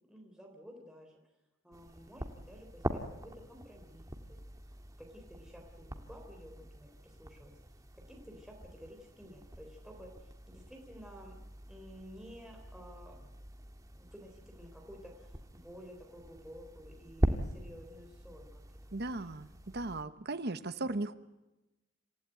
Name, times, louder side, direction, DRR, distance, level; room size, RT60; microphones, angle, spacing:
voice 1, 0.1-1.2 1.6-4.4 5.0-7.5 8.1-11.4 11.7-13.2 14.0-18.9, equal, 5° right, 1 dB, 3.7 m, -52 dB
sound 1, 1.7-20.0, equal, 20° right, 1.8 m, -42 dB
voice 2, 18.9-21.2, right 2 dB, 55° right, 11 dB, 1.2 m, -37 dB
27.5 x 15.5 x 9.2 m, 1.0 s
head